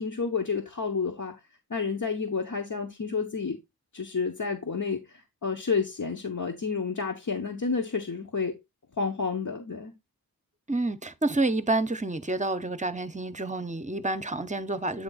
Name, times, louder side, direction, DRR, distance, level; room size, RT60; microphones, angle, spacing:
voice 1, 0.0-1.4 1.7-3.6 3.9-8.6 9.0-9.9, left 5 dB, 55° left, 1.1 m, -30 dB
voice 2, 10.7-15.0, right 2 dB, 20° right, 0.8 m, -29 dB
8.8 x 3.3 x 4.0 m
cardioid pair, 45°, 37 cm